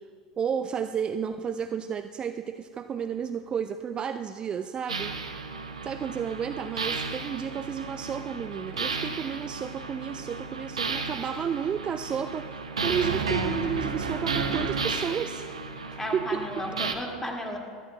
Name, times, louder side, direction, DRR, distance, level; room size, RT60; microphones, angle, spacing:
voice 1, 0.4-5.1 5.8-15.5 15.9-16.4, right 7 dB, 25° right, 10 dB, 0.4 m, -32 dB
sound 1, 4.9-16.9, right 4 dB, 80° right, 0.9 m, -33 dB
voice 2, 16.0-17.6, left 1 dB, 10° left, 1 dB, 2.1 m, -34 dB
22.5 x 13.5 x 2.2 m, 2.2 s
figure-of-eight pair, 80°, 3 cm